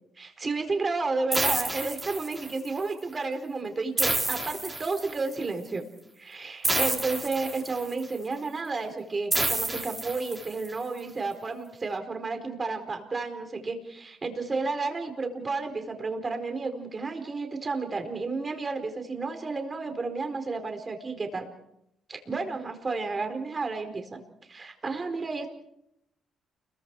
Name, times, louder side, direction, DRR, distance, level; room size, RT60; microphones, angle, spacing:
voice 1, 0.2-5.9 6.2-21.5 22.1-25.5, right 3 dB, 30° right, 6 dB, 4.5 m, -32 dB
sound 1, 1.3-2.7 4.0-5.3 6.6-8.0 9.3-10.7, right 2 dB, 15° right, 4.0 m, -29 dB
30.0 x 22.5 x 4.8 m, 0.78 s
cardioid pair, 90°, 0 cm